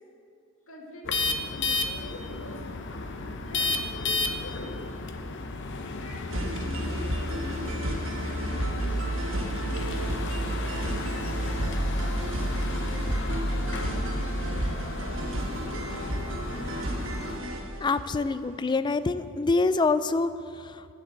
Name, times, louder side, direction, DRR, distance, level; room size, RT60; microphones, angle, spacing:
voice 1, 0.7-2.6 3.1-4.9 5.7-9.0 9.7-10.6, left 1 dB, 80° left, -1 dB, 2.1 m, -45 dB
sound 1, 1.0-17.4, left 3 dB, 60° left, 0.7 m, -34 dB
sound 2, 6.3-18.1, right 1 dB, 65° right, 1.2 m, -31 dB
voice 2, 17.8-20.9, left 3 dB, 20° left, 13 dB, 0.3 m, -26 dB
11.5 x 6.7 x 7.8 m, 2.4 s
head